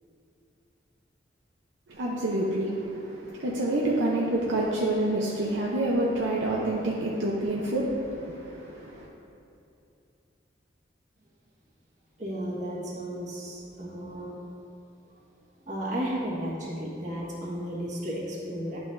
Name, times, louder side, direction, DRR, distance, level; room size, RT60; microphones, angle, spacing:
voice 1, 1.9-9.1, right 1 dB, 80° right, -4 dB, 0.7 m, -28 dB
voice 2, 12.2-14.5 15.1-15.2 15.6-18.8, equal, 40° right, -5 dB, 1.4 m, -34 dB
11.0 x 5.6 x 2.6 m, 2.7 s
head